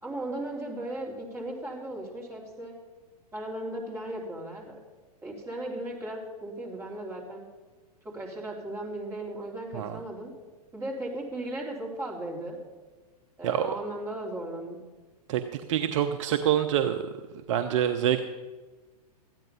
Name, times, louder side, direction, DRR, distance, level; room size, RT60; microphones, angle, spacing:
voice 1, 0.0-2.7 3.3-4.7 5.2-7.4 8.0-10.3 10.7-12.6 13.4-14.8, right 1 dB, 15° right, -3 dB, 3.3 m, -36 dB
voice 2, 15.7-17.0 17.5-18.2, right 10 dB, 50° right, 7 dB, 0.8 m, -25 dB
13.5 x 9.1 x 5.6 m, 1.3 s
hypercardioid pair, 115°, 20 cm